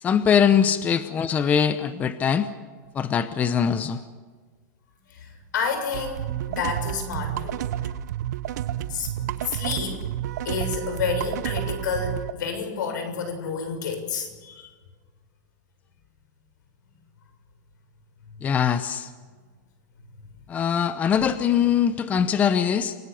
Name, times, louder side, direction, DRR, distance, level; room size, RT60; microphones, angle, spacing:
voice 1, 0.0-2.5 2.9-4.0 18.4-19.1 20.5-23.0, left 8 dB, 15° left, 11 dB, 0.8 m, -22 dB
voice 2, 5.1-7.6 8.7-10.1 10.5-14.7, left 5 dB, 85° left, 7 dB, 6.9 m, -30 dB
sound 1, 5.9-12.3, right 11 dB, 65° right, 0.8 m, -30 dB
28.5 x 18.0 x 7.0 m, 1.5 s
supercardioid pair, 170°, 10 cm